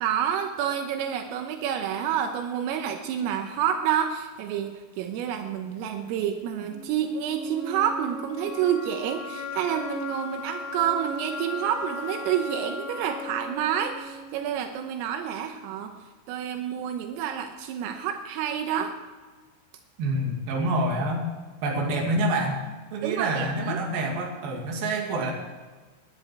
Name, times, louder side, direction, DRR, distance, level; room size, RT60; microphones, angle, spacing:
voice 1, 0.0-15.9 16.3-18.9 23.0-23.8, right 9 dB, 85° right, 5 dB, 3.6 m, -28 dB
sound 1, 6.7-14.6, left 3 dB, 40° left, 2.8 m, -37 dB
voice 2, 20.0-21.2 21.6-22.6 22.9-25.3, right 1 dB, 50° right, 0 dB, 3.7 m, -27 dB
20.0 x 10.5 x 4.7 m, 1.3 s
omnidirectional pair, 5.9 m